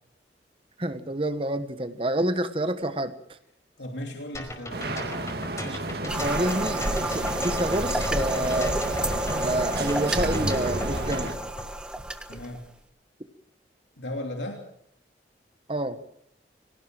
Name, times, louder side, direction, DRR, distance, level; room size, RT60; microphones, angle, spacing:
voice 1, 0.8-3.4 5.6-8.8 9.3-11.4 15.7-16.0, right 1 dB, 30° right, 10 dB, 1.4 m, -29 dB
voice 2, 3.8-4.9 12.3-12.6 14.0-14.7, left 1 dB, 85° left, 2 dB, 3.0 m, -36 dB
sound 1, 4.3-11.7, left 1 dB, 15° left, 5.1 m, -39 dB
sound 2, 4.7-11.3, right 2 dB, 60° right, 2.3 m, -32 dB
sound 3, 6.1-12.7, right 1 dB, 5° right, 1.5 m, -30 dB
25.5 x 17.5 x 7.8 m, 0.71 s
head